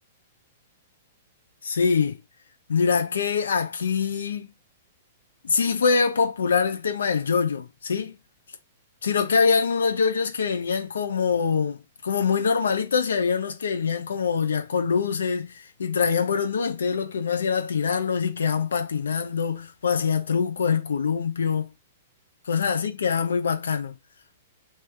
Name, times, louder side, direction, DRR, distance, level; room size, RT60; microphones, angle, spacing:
voice 1, 1.6-2.2 2.7-4.5 5.4-8.1 9.0-21.7 22.5-23.9, left 5 dB, 70° left, 0.9 m, -24 dB
3.3 x 3.0 x 3.4 m
figure-of-eight pair, 110°, 0 cm